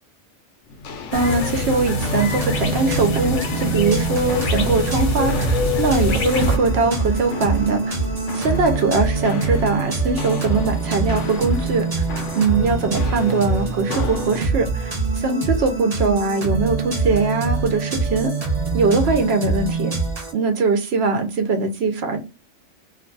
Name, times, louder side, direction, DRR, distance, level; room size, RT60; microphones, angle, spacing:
Walk footsteps, 0.7-14.5, left 3 dB, 80° left, 0.9 m, -34 dB
sound 1, 1.1-6.6, left 2 dB, 50° left, 0.8 m, -24 dB
voice 1, 1.1-8.0 8.3-11.9 12.3-18.3 18.7-19.9 20.3-22.2, right 3 dB, 65° right, 5 dB, 0.8 m, -21 dB
sound 2, 2.0-20.3, right 4 dB, 35° right, 0.8 m, -25 dB
2.6 x 2.3 x 3.7 m, 0.27 s
omnidirectional pair, 1.3 m